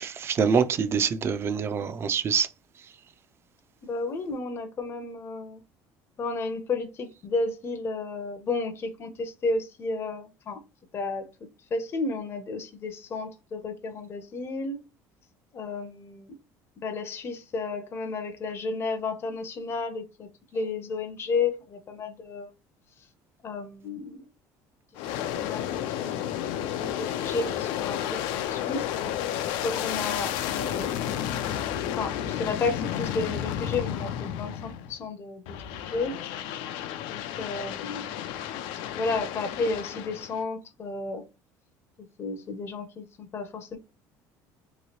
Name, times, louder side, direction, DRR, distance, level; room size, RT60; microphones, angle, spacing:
voice 1, 0.0-2.5, right 6 dB, 30° right, 0.4 m, -25 dB
voice 2, 3.8-5.6 6.2-10.6 10.9-11.3 11.7-14.8 15.5-16.3 16.8-22.5 23.4-24.3 25.0-26.3 26.8-28.9 29.6-31.1 32.0-36.2 37.1-38.1 38.9-41.2 42.2-43.8, left 3 dB, 35° left, 0.6 m, -32 dB
Aircraft, 24.9-35.0 35.5-40.4, left 10 dB, 80° left, 0.4 m, -32 dB
3.0 x 2.7 x 2.8 m
cardioid pair, 130°, 8 cm